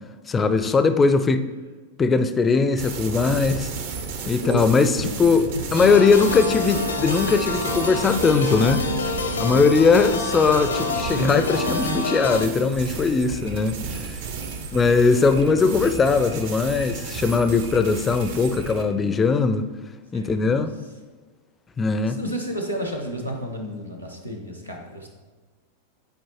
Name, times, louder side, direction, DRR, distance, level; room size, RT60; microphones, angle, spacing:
voice 1, 0.3-1.4 2.0-3.7 4.3-5.5 5.7-8.8 9.4-14.2 14.7-19.7 20.1-20.7 21.8-22.2, left 4 dB, 20° left, 10 dB, 0.4 m, -20 dB
sound 1, 2.8-18.9, right 5 dB, 50° right, 0.7 m, -33 dB
voice 2, 4.4-5.4 6.3-6.6 9.5-9.8 14.3-14.8 15.1-15.9 20.1-20.6 22.1-25.1, right 1 dB, 90° right, 0 dB, 0.9 m, -33 dB
sound 2, 5.7-12.5, left 2 dB, 75° left, 0.6 m, -27 dB
8.9 x 4.4 x 3.0 m, 1.4 s
figure-of-eight pair, 90°, 0 cm